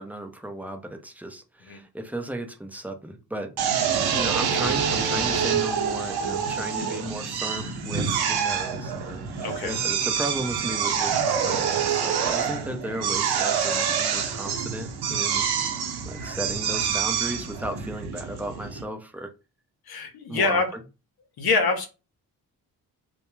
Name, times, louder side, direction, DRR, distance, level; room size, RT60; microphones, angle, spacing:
voice 1, 0.0-3.9 4.1-15.5 16.0-19.3 20.3-20.8, right 1 dB, 5° right, 4 dB, 0.6 m, -35 dB
Drill, 3.6-18.8, right 7 dB, 65° right, 0.8 m, -26 dB
voice 2, 3.8-4.3 9.4-9.8 19.9-20.7 21.4-21.9, left 4 dB, 60° left, 6 dB, 0.8 m, -25 dB
2.1 x 2.1 x 3.1 m, 0.30 s
supercardioid pair, 50°, 42 cm